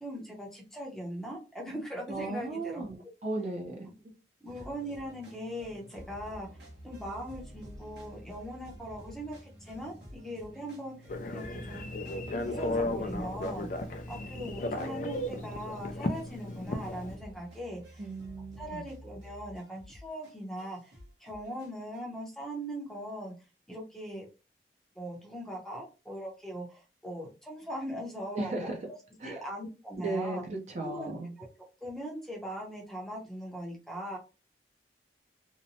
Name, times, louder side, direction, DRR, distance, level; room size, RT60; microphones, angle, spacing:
voice 1, 0.0-2.8 4.4-6.5 6.8-11.1 11.3-11.9 12.4-13.7 14.1-18.1 18.6-20.9 21.2-23.3 23.7-24.3 25.0-29.0 29.2-30.4 30.8-31.5 31.8-34.2, equal, ahead, 0.6 m, -40 dB
voice 2, 2.1-3.0 3.2-3.9 18.0-18.8 28.3-28.8 29.2-29.4 30.0-31.3, right 2 dB, 40° right, 0.5 m, -35 dB
sound 1, 4.4-22.0, equal, 75° right, 1.0 m, -50 dB
Telephone, 11.1-17.2, left 1 dB, 45° left, 0.4 m, -35 dB
2.8 x 2.1 x 2.6 m
head